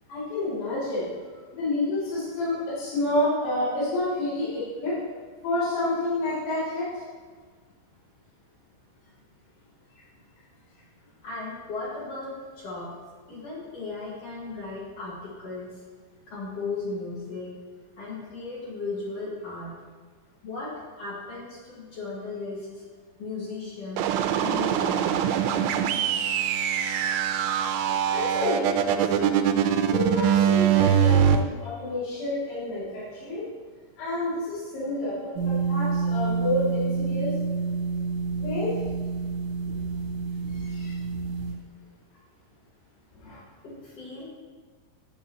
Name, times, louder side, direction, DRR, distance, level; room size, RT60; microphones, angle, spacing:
voice 1, 0.1-1.1 1.5-4.9 5.4-7.0 26.8-26.9 28.1-29.4 29.9-33.4 34.0-35.2 35.4-37.3 38.4-38.7 40.5-40.9 43.2-43.4, left 1 dB, 75° left, -10 dB, 5.1 m, -29 dB
voice 2, 11.2-12.9 13.3-15.7 16.3-17.5 18.0-19.7 20.4-22.8 23.2-25.4 43.6-44.3, left 3 dB, 50° left, -6 dB, 2.2 m, -36 dB
sound 1, 24.0-31.4, right 9 dB, 85° right, 2.6 m, -23 dB
bec low bell solo, 35.3-41.5, right 4 dB, 50° right, 1.7 m, -28 dB
9.7 x 9.1 x 3.0 m, 1.5 s
omnidirectional pair, 5.2 m